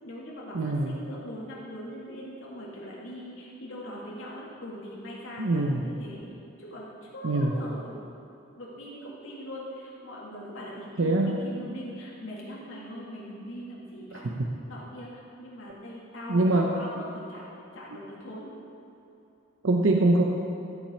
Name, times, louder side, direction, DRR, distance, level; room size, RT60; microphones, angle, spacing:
voice 1, 0.0-6.2 6.6-8.0 8.5-14.3 14.7-15.1 15.4-18.6, equal, 90° left, -5 dB, 2.1 m, -41 dB
voice 2, 0.5-1.0 5.4-5.9 7.2-7.6 11.0-11.4 14.1-14.5 16.3-16.7 19.6-20.2, right 2 dB, 85° right, 1 dB, 0.7 m, -24 dB
14.5 x 6.0 x 4.4 m, 2.8 s
head